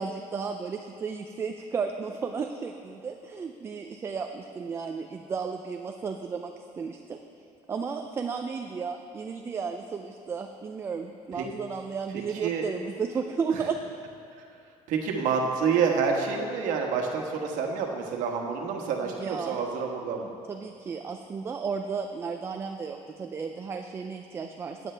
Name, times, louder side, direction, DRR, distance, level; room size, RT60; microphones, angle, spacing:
voice 1, 0.0-7.2 7.7-13.8 19.0-19.6 20.5-24.9, right 5 dB, 20° right, 5 dB, 0.3 m, -33 dB
voice 2, 14.9-20.3, right 5 dB, 80° right, 1 dB, 1.3 m, -28 dB
15.5 x 9.2 x 3.3 m, 2.4 s
cardioid pair, 175°, 13 cm